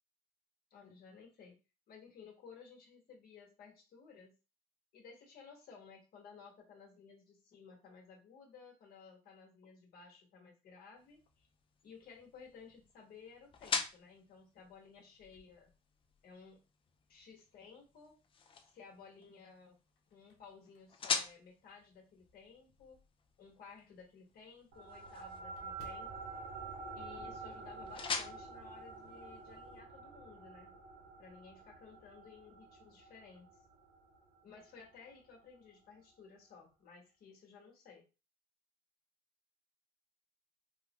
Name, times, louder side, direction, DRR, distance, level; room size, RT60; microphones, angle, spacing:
voice 1, 0.7-1.6 1.9-4.3 4.9-11.5 11.8-15.7 16.2-16.6 17.1-18.1 18.6-19.8 20.1-23.0 23.4-26.1 26.9-30.7 31.2-33.5 34.4-38.0, left 5 dB, 65° left, 0 dB, 1.3 m, -56 dB
sound 1, 11.0-29.8, left 5 dB, 30° left, 0.4 m, -45 dB
sound 2, 15.2-16.6 17.1-17.2 18.7-19.2 19.7-22.3 22.8-22.9 23.3-23.4 23.6-23.7 24.0-27.8 28.0-28.3 28.6-29.2, left 2 dB, 80° left, 0.7 m, -65 dB
sound 3, 24.7-35.5, right 4 dB, 80° right, 0.8 m, -49 dB
3.6 x 2.1 x 2.9 m, 0.31 s
cardioid pair, 110°, 17 cm